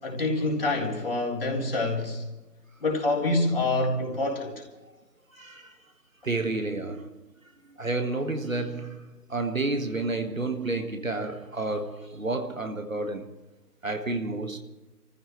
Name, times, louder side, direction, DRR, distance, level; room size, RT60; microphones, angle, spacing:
voice 1, 0.0-2.2 2.8-4.5, left 2 dB, 35° left, 3.9 m, -26 dB
voice 2, 5.3-5.8 6.2-7.2 7.7-13.3 13.8-14.6, right 2 dB, 55° right, 1.7 m, -30 dB
29.5 x 15.0 x 3.1 m
figure-of-eight pair, 165°, 48 cm